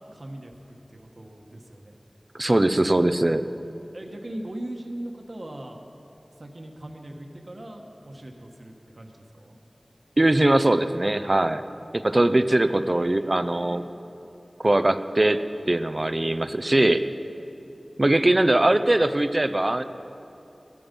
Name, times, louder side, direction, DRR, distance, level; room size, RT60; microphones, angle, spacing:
voice 1, 0.1-2.0 3.9-5.8 6.4-9.6 12.5-13.8, right 1 dB, 60° right, 2 dB, 1.4 m, -40 dB
voice 2, 2.3-3.5 10.2-11.6 11.9-13.8 14.6-15.4 15.7-17.0 18.0-19.8, right 1 dB, 40° right, 11 dB, 0.6 m, -21 dB
16.5 x 13.0 x 5.4 m, 2.9 s
wide cardioid pair, 45°, 0 cm